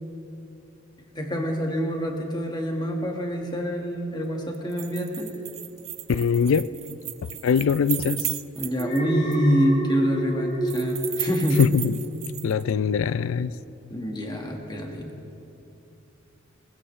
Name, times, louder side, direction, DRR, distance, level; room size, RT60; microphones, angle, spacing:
voice 1, 1.1-5.3 8.5-11.6 13.9-15.1, equal, 20° left, 1 dB, 1.6 m, -26 dB
sound 1, 4.5-9.0 9.3-9.4 10.7-12.6, right 13 dB, 35° right, 0.5 m, -35 dB
voice 2, 6.1-6.7 7.4-8.3 11.6-11.9 12.4-13.5, left 6 dB, 75° left, 16 dB, 0.4 m, -22 dB
Alarm, 8.8-12.1 12.5-12.8, right 1 dB, 40° left, 3.6 m, -30 dB
20.0 x 19.5 x 3.2 m, 2.7 s
head